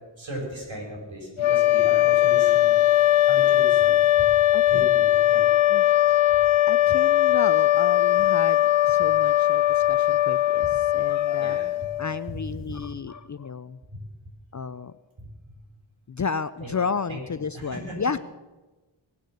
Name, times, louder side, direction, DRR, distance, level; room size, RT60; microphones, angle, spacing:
voice 1, 0.2-2.8 3.3-4.3 4.7-5.4 11.3-11.7 12.7-12.8 13.9-14.0 15.2-15.3 16.6-16.7 17.1-17.2 17.5-18.0, right 1 dB, 70° right, -1 dB, 6.7 m, -37 dB
sound 1, 1.4-12.3, left 13 dB, 85° left, 0.6 m, -20 dB
voice 2, 4.5-4.9 5.7-5.8 6.6-11.6 12.0-13.8 14.5-14.9 16.1-18.2, left 5 dB, 40° left, 14 dB, 0.5 m, -32 dB
24.0 x 8.6 x 6.7 m, 1.2 s
wide cardioid pair, 70°, 47 cm